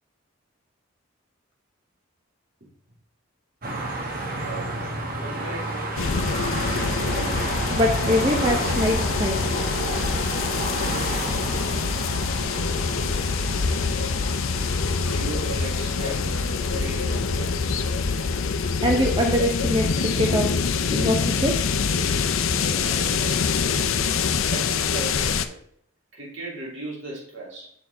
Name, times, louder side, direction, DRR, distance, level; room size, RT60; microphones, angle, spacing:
sound 1, 3.6-18.7, right 2 dB, 45° right, 1.3 m, -32 dB
voice 1, 4.4-4.8 5.1-6.6 15.0-17.7 22.5-23.8 24.4-25.6 26.1-27.7, right 2 dB, 65° right, 3.0 m, -38 dB
sound 2, 6.0-25.5, left 5 dB, 80° left, 0.6 m, -25 dB
voice 2, 7.7-9.4 18.8-20.5 20.9-21.6, equal, 25° right, 0.7 m, -23 dB
7.0 x 4.5 x 4.2 m
head